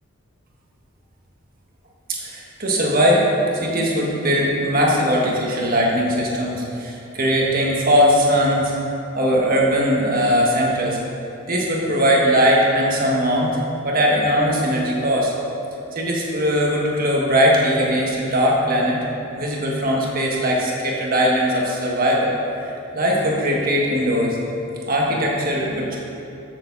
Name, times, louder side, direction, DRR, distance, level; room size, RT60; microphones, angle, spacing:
voice 1, 2.1-3.3 3.5-8.7 9.1-11.0 11.5-13.6 13.8-15.3 15.9-19.0 19.4-24.4 24.9-26.0, equal, 40° right, -2 dB, 1.6 m, -20 dB
13.0 x 7.0 x 4.1 m, 2.8 s
head